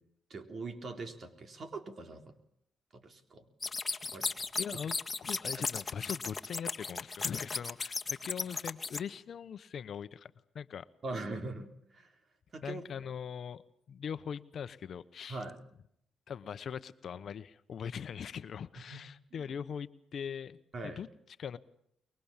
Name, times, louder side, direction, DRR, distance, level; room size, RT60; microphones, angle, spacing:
voice 1, 0.3-2.4 2.9-3.5 4.1-4.3 5.6-5.7 11.0-12.1 12.5-12.8 15.3-15.6 18.9-19.0 19.3-19.5 20.7-21.0, right 2 dB, 50° right, 6 dB, 3.7 m, -42 dB
sound 1, 3.6-9.0, left 4 dB, 30° left, 1.8 m, -36 dB
voice 2, 4.6-5.0 5.2-10.9 12.6-13.6 13.9-15.4 16.3-21.1 21.4-21.6, left 7 dB, 60° left, 13 dB, 1.0 m, -41 dB
24.0 x 22.5 x 7.4 m, 0.73 s
cardioid pair, 75°, 0 cm